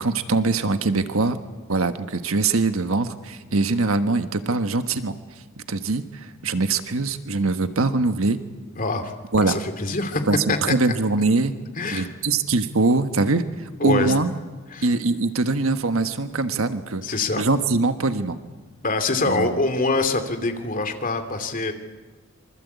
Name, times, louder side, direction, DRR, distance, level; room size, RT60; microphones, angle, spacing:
voice 1, 0.0-1.4 1.7-5.2 5.7-8.4 9.3-9.6 10.3-11.5 11.9-14.4 14.8-17.0 17.4-18.4 19.2-19.6, right 3 dB, 85° right, 9 dB, 1.4 m, -22 dB
voice 2, 8.8-10.2 10.5-10.7 11.8-12.1 13.8-14.1 14.7-14.9 17.0-17.4 18.8-21.7, left 3 dB, 40° left, 7 dB, 2.8 m, -24 dB
26.5 x 25.0 x 8.3 m, 1.3 s
head